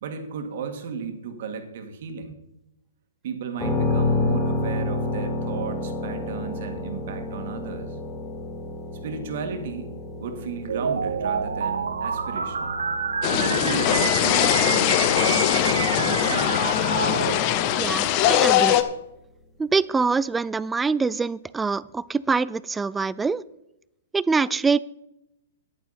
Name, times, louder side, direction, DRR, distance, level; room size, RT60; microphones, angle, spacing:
voice 1, 0.0-2.4 3.2-8.0 9.0-9.9 10.2-12.8 13.3-15.5 16.0-17.2, right 6 dB, 60° right, 6 dB, 2.0 m, -34 dB
sound 1, 3.6-17.3, left 2 dB, 10° left, 3.6 m, -31 dB
sound 2, 10.7-17.4, right 5 dB, 85° right, 0.9 m, -28 dB
sound 3, 13.2-18.8, left 11 dB, 40° left, 0.8 m, -21 dB
voice 2, 17.8-18.8 19.6-23.4 24.1-24.8, right 4 dB, 10° right, 20 dB, 0.3 m, -24 dB
10.5 x 9.0 x 4.3 m, 0.85 s
hypercardioid pair, 130°, 0 cm